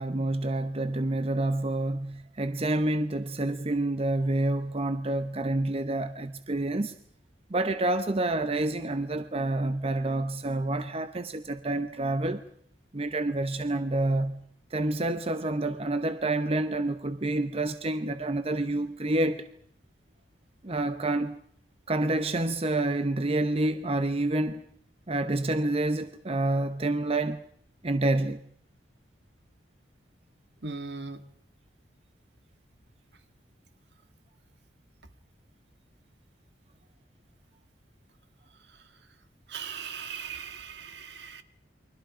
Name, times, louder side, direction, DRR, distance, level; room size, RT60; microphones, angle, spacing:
voice 1, 0.0-6.9 7.5-12.4 12.9-14.4 14.7-19.5 20.6-21.4 21.9-24.7 25.1-27.4 27.8-28.4, right 2 dB, 35° right, 0.9 m, -28 dB
voice 2, 30.6-31.2 39.5-41.4, right 5 dB, 65° right, 2.0 m, -38 dB
29.5 x 24.0 x 5.1 m
head